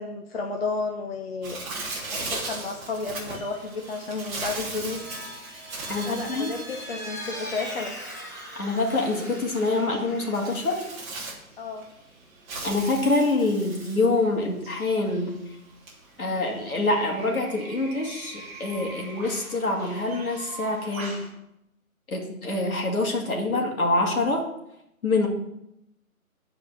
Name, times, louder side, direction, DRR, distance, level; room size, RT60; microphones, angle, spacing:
voice 1, 0.0-1.6 2.1-5.1 6.1-7.9 11.6-11.8, left 3 dB, 45° left, 2 dB, 1.0 m, -32 dB
Bird, 1.4-21.3, right 3 dB, 10° right, 1.0 m, -39 dB
Vehicle, 4.7-11.1, equal, 15° left, 0.6 m, -40 dB
voice 2, 5.9-6.5 8.5-10.9 12.6-15.3 16.2-21.2 22.1-24.4 25.0-25.3, left 2 dB, 75° left, 0 dB, 2.6 m, -25 dB
9.0 x 4.8 x 7.5 m, 0.83 s
figure-of-eight pair, 150°, 43 cm